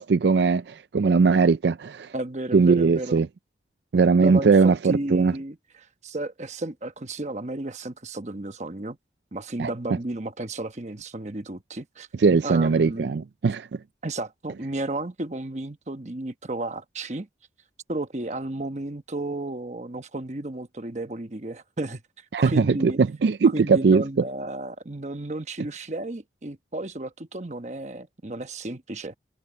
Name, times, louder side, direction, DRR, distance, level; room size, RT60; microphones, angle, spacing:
voice 1, 0.0-2.1 2.5-3.3 3.9-5.3 9.6-9.7 12.2-13.8 22.3-24.0, right 4 dB, 70° right, 0.4 m, -20 dB
voice 2, 2.1-3.2 4.2-9.0 9.3-12.1 12.4-13.1 14.0-17.3 17.9-22.0 22.4-23.0 23.5-29.1, right 2 dB, 40° right, 1.1 m, -33 dB
head